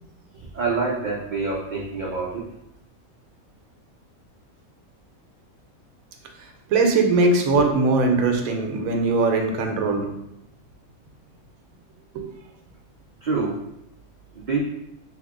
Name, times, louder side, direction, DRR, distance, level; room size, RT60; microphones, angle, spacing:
voice 1, 0.5-2.4 13.2-13.6 14.4-14.6, right 4 dB, 65° right, -4 dB, 0.4 m, -26 dB
voice 2, 6.7-10.0 12.1-12.2, right 3 dB, 80° right, 3 dB, 1.0 m, -20 dB
2.8 x 2.6 x 3.6 m, 0.83 s
omnidirectional pair, 1.5 m